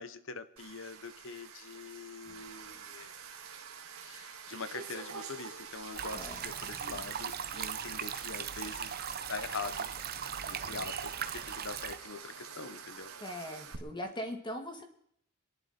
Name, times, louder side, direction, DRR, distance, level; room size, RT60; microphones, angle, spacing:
voice 1, 0.0-3.1 4.0-9.0 9.3-9.9 10.5-13.1, left 4 dB, 65° left, 12 dB, 1.0 m, -43 dB
sound 1, 0.6-13.7, right 6 dB, 80° right, 1.9 m, -47 dB
sound 2, 6.0-12.0, right 8 dB, 45° right, 0.8 m, -39 dB
voice 2, 6.1-6.7 13.2-14.8, equal, 20° left, 4 dB, 2.1 m, -40 dB
25.0 x 11.5 x 4.4 m, 0.69 s
head